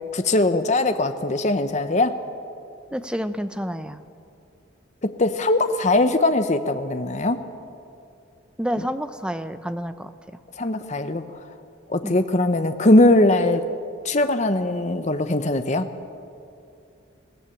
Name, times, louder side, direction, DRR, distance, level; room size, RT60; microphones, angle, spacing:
voice 1, 0.1-2.2 5.0-7.4 10.6-11.2 11.9-13.6 14.0-15.9, left 2 dB, 35° left, 8 dB, 0.8 m, -20 dB
voice 2, 2.9-4.0 8.6-10.1 12.0-12.2, equal, 5° right, 10 dB, 0.6 m, -29 dB
21.5 x 16.5 x 9.1 m, 2.6 s
head